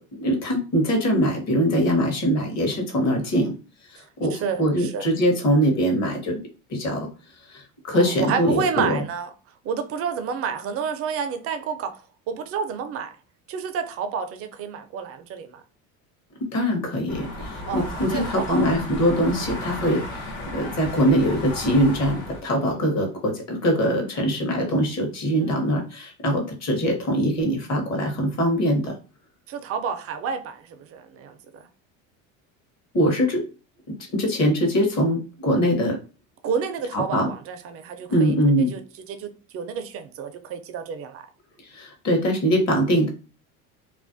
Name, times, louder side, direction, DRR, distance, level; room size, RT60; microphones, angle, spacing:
voice 1, 0.2-3.5 3.9-6.4 6.7-7.1 7.5-9.0 16.4-28.9 32.9-33.4 33.9-36.0 36.9-37.3 38.1-38.8 41.7-43.1, equal, 40° left, 0.9 m, -22 dB
voice 2, 4.3-5.0 7.9-9.3 9.6-13.1 13.5-15.6 17.7-18.7 22.6-22.8 25.4-25.6 29.5-31.6 36.4-38.3 38.7-38.8 39.1-41.2, right 6 dB, 35° right, 0.4 m, -30 dB
sound 1, 17.1-22.4, left 1 dB, 85° left, 1.1 m, -34 dB
2.4 x 2.1 x 2.5 m
supercardioid pair, 100°, 40 cm